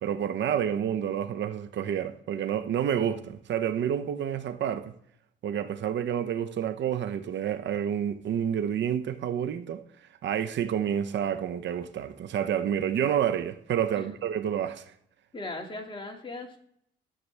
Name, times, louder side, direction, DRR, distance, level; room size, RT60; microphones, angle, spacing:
voice 1, 0.0-4.9 5.4-9.8 10.2-14.9, right 9 dB, 65° right, 0.8 m, -29 dB
voice 2, 15.3-16.6, left 2 dB, 25° left, 2.2 m, -38 dB
12.5 x 7.6 x 3.3 m
cardioid pair, 90°, 20 cm